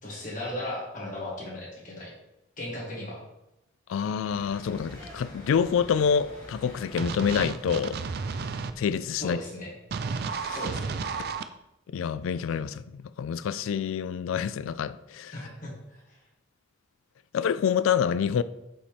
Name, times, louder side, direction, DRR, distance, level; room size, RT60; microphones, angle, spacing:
voice 1, 0.0-2.1 2.6-3.2 9.2-9.7 10.5-10.9 15.3-16.0, left 1 dB, 40° left, 2.1 m, -36 dB
voice 2, 3.9-8.0 8.8-9.4 10.2-10.6 11.9-15.4 17.3-18.4, left 7 dB, 80° left, 0.3 m, -27 dB
sound 1, 4.3-9.7, equal, 20° left, 1.8 m, -47 dB
sound 2, 7.0-8.7 9.9-11.4, right 5 dB, 50° right, 0.4 m, -32 dB
5.4 x 4.2 x 5.1 m
head